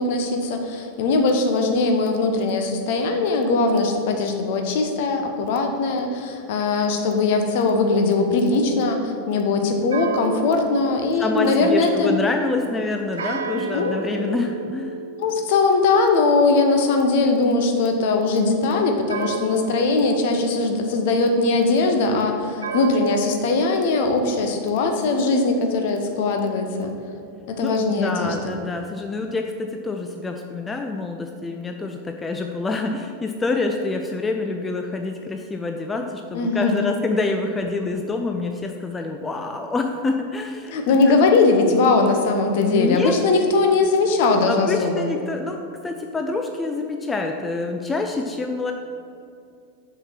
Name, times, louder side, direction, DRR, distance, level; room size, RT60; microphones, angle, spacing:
voice 1, 0.0-12.2 13.7-13.9 15.2-26.9 27.5-28.6 36.3-36.9 40.7-45.1, left 3 dB, 50° left, 4 dB, 0.9 m, -20 dB
sound 1, 9.9-12.4 13.2-18.1 19.1-21.5 22.6-25.1, right 4 dB, 70° right, 0.4 m, -35 dB
voice 2, 11.2-15.0 27.6-41.2 41.7-41.9 42.6-43.2 44.5-48.7, left 3 dB, 15° left, 4 dB, 0.4 m, -27 dB
6.4 x 4.7 x 5.7 m, 2.4 s
figure-of-eight pair, 90°, 0 cm